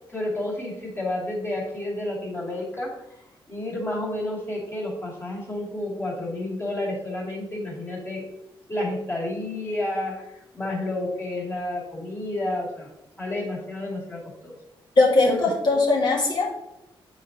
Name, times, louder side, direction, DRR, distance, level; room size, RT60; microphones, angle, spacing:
voice 1, 0.0-2.9 3.5-8.2 8.7-12.9 13.2-14.5 15.3-15.5, left 1 dB, 25° left, -3 dB, 2.4 m, -30 dB
voice 2, 15.0-16.5, left 3 dB, 55° left, -3 dB, 1.8 m, -20 dB
8.0 x 4.1 x 3.9 m, 0.86 s
cardioid pair, 115°, 9 cm